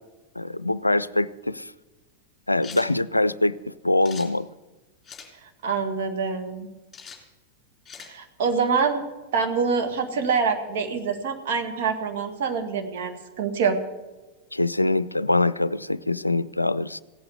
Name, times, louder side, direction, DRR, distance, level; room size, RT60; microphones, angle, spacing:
voice 1, 0.4-1.7 2.5-4.5 14.5-17.0, left 2 dB, 85° left, 18 dB, 0.4 m, -24 dB
sound 1, 2.6-2.9 4.0-4.3 5.0-5.3 6.9-7.2 7.8-8.1, left 6 dB, 20° left, 3.4 m, -42 dB
voice 2, 5.6-6.7 8.0-9.1 9.3-13.8, right 5 dB, 55° right, 4 dB, 1.9 m, -25 dB
16.5 x 8.6 x 8.2 m, 1.2 s
figure-of-eight pair, 90°, 0 cm